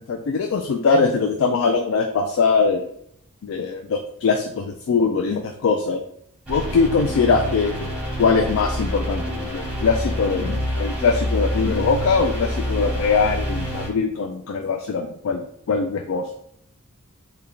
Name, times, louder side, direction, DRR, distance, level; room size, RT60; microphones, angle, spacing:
voice 1, 0.1-2.9 3.4-6.0 6.5-7.9 8.2-16.3, left 4 dB, 60° left, 3 dB, 0.3 m, -22 dB
sound 1, 6.5-13.9, equal, 5° right, 1.0 m, -27 dB
3.4 x 2.2 x 3.7 m, 0.71 s
head